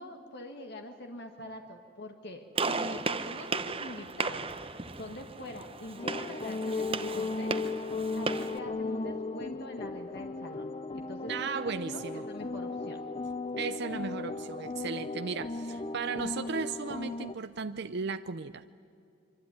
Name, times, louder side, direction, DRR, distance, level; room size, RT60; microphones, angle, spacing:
voice 1, 0.0-4.5 4.9-7.6 8.1-11.3 11.9-13.0, left 1 dB, 60° left, 4 dB, 1.6 m, -44 dB
Gunshot gunfire, 2.5-8.6, right 4 dB, 30° right, 1.0 m, -35 dB
sound 1, 6.0-17.3, left 3 dB, 30° left, 0.7 m, -36 dB
voice 2, 11.3-12.3 13.6-18.6, right 5 dB, 60° right, 11 dB, 0.6 m, -36 dB
25.0 x 24.5 x 9.7 m, 2.6 s
head